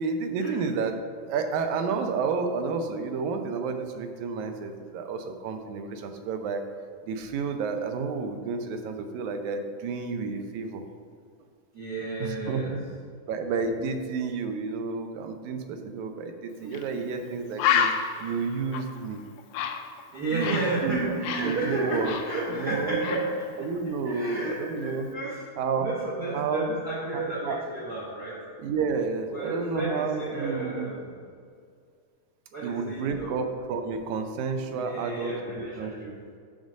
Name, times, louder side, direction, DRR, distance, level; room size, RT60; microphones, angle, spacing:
voice 1, 0.0-6.6 7.1-10.8 12.2-12.8 13.3-17.9 18.2-19.2 20.3-22.2 22.5-23.2 23.6-25.1 25.6-25.9 26.3-26.7 27.1-27.6 28.6-30.9 32.6-36.1, right 5 dB, 75° right, 6 dB, 2.0 m, -31 dB
voice 2, 11.7-12.8 16.6-17.0 20.1-23.7 24.0-25.5 25.8-28.4 29.3-31.1 32.5-33.3 34.7-36.1, right 2 dB, 50° right, -6 dB, 1.1 m, -32 dB
Bird, 16.7-16.9 17.2-17.3 17.6-20.8 21.0-22.7 23.0-23.3, left 8 dB, 80° left, 1.9 m, -29 dB
8.9 x 3.9 x 6.2 m, 2.2 s
omnidirectional pair, 3.5 m